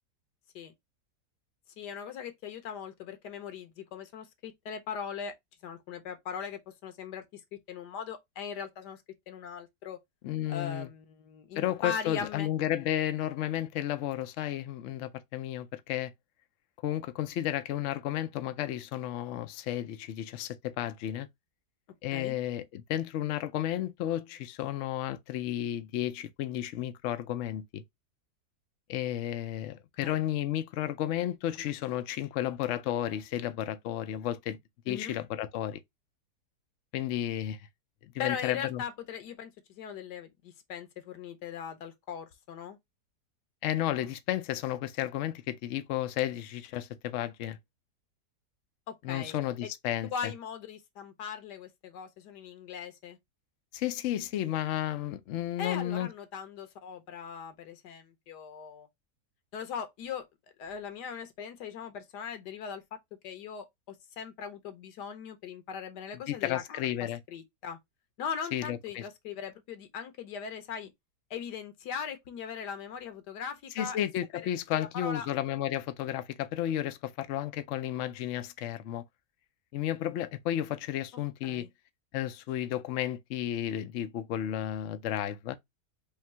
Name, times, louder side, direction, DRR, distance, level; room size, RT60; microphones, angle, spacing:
voice 1, 1.8-5.3 5.6-10.0 10.5-12.5 22.1-22.3 30.0-30.2 34.9-35.2 38.2-42.8 48.9-49.4 49.6-49.7 50.1-53.2 55.6-58.9 59.5-60.2 60.6-63.0 63.2-67.8 68.2-70.9 71.3-74.0 74.7-75.3 81.4-81.7, left 7 dB, 85° left, 1.5 m, -40 dB
voice 2, 10.2-10.9 11.5-16.1 16.8-21.3 22.0-27.8 28.9-34.6 34.9-35.8 36.9-37.6 38.0-38.8 43.6-47.6 49.0-50.3 53.7-56.1 66.1-67.2 68.5-69.0 73.7-79.0 79.7-81.7 82.1-85.5, left 12 dB, 65° left, 0.7 m, -33 dB
3.6 x 2.7 x 4.3 m
omnidirectional pair, 1.7 m